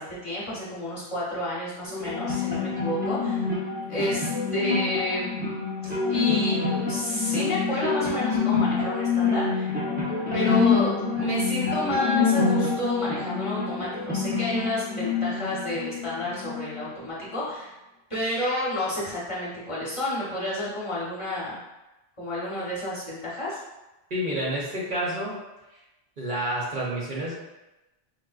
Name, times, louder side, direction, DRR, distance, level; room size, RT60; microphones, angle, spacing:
voice 1, 0.0-3.4 3.9-5.3 6.1-9.8 10.3-17.7 18.1-21.6 22.2-23.6, left 1 dB, 30° left, -8 dB, 0.8 m, -30 dB
sound 1, 1.9-16.8, left 5 dB, 10° right, 0.5 m, -26 dB
voice 2, 24.1-25.4 26.2-27.4, right 1 dB, 55° right, -5 dB, 0.7 m, -29 dB
4.6 x 2.1 x 2.3 m, 1.0 s
omnidirectional pair, 1.1 m